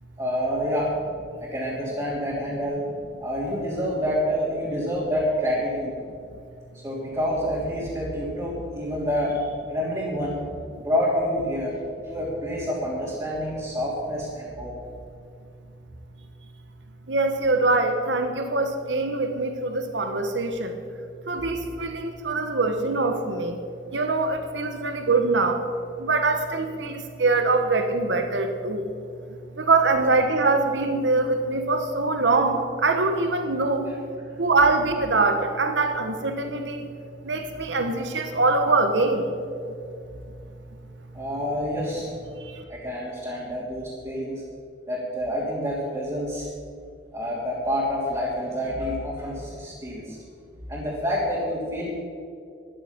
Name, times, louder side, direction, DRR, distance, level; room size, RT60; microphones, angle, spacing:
voice 1, 0.2-0.9 1.4-2.8 3.2-5.9 6.8-10.4 10.8-11.7 12.1-14.7 41.1-42.1 42.7-44.4 44.9-46.5 47.1-50.2 50.7-51.9, equal, 20° right, -8 dB, 3.1 m, -27 dB
voice 2, 17.1-20.8 21.3-23.6 23.9-25.6 26.0-28.9 29.5-33.9 34.4-36.9 37.2-39.3 39.7-39.8 42.4-42.6, right 3 dB, 80° right, 6 dB, 1.2 m, -23 dB
13.5 x 12.0 x 6.0 m, 2.4 s
head